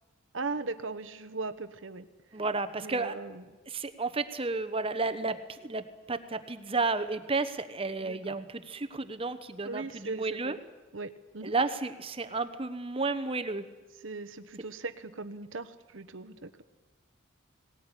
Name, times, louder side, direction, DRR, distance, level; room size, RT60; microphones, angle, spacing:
voice 1, 0.3-2.1 2.8-3.4 8.0-8.4 9.6-10.6 10.9-11.5 14.0-16.6, right 3 dB, 80° right, 11 dB, 1.2 m, -38 dB
voice 2, 2.3-3.1 3.7-10.6 11.4-13.6, right 3 dB, 30° right, 11 dB, 1.0 m, -32 dB
19.0 x 19.0 x 9.9 m, 1.2 s
head